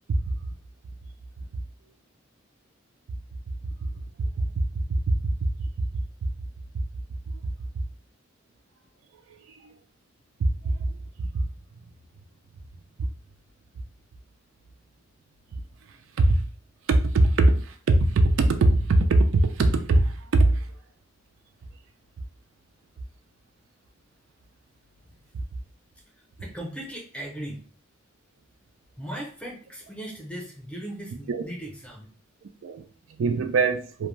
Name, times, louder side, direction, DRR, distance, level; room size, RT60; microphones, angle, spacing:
voice 1, 4.2-5.5 5.8-5.9 9.5-9.7 10.4-11.4 13.0-13.1 15.9-16.5 16.9-20.7 31.3-31.4 32.4-34.1, right 2 dB, 80° right, 0.4 m, -22 dB
voice 2, 26.2-27.6 29.0-32.1, right 1 dB, 5° left, 0.6 m, -38 dB
2.5 x 2.2 x 3.1 m
head